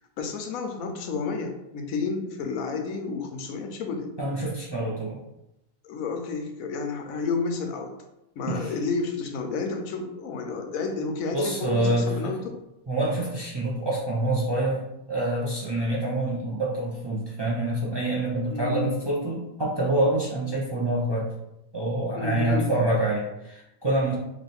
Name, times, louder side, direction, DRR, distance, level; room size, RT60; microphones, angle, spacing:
voice 1, 0.2-4.1 5.8-7.9 8.4-12.4 18.5-19.0 22.1-22.7, left 4 dB, 85° left, 4 dB, 1.1 m, -30 dB
voice 2, 4.2-5.2 8.5-8.7 11.3-12.3 12.9-14.8 15.1-21.3 21.7-24.1, right 1 dB, 25° right, -5 dB, 0.6 m, -26 dB
3.2 x 3.0 x 4.1 m, 0.88 s
omnidirectional pair, 1.4 m